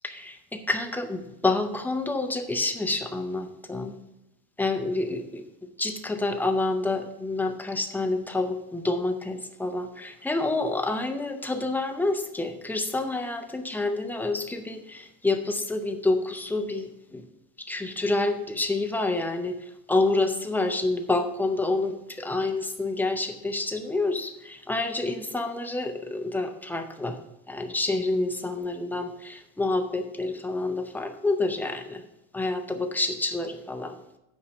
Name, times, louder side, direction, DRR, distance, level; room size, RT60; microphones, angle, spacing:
voice 1, 0.0-3.9 4.6-5.4 5.8-17.2 17.6-19.5 19.9-27.2 27.5-32.0 32.3-33.9, left 2 dB, 5° left, 5 dB, 0.5 m, -28 dB
8.7 x 5.5 x 5.3 m, 0.92 s
cardioid pair, 160°, 39 cm